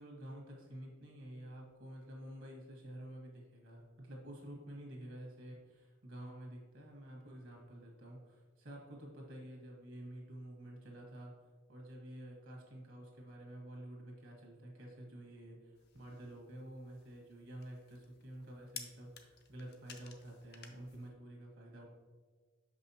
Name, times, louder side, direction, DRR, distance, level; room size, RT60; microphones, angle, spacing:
voice 1, 0.0-11.3 11.7-21.9, right 1 dB, 65° right, 0 dB, 1.6 m, -50 dB
sound 1, 15.7-21.1, left 7 dB, 50° left, 0.6 m, -55 dB
6.1 x 5.5 x 2.8 m, 1.5 s
head